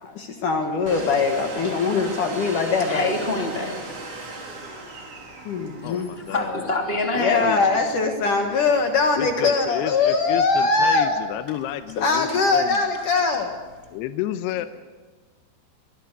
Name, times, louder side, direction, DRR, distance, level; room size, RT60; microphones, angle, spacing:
voice 1, 0.0-3.1 5.4-6.1 7.2-11.1 12.0-13.5, left 4 dB, 60° left, 4 dB, 2.4 m, -22 dB
Domestic sounds home sounds, 0.8-14.0, right 3 dB, 45° right, 5.0 m, -40 dB
voice 2, 2.9-4.4 5.8-8.0 10.6-11.0 14.4-14.6, left 2 dB, 15° left, 1 dB, 2.2 m, -28 dB
voice 3, 5.8-6.7 7.3-8.0 9.2-12.8 13.9-14.7, left 12 dB, 80° left, 9 dB, 2.6 m, -31 dB
25.0 x 20.0 x 6.7 m, 1.3 s
omnidirectional pair, 5.4 m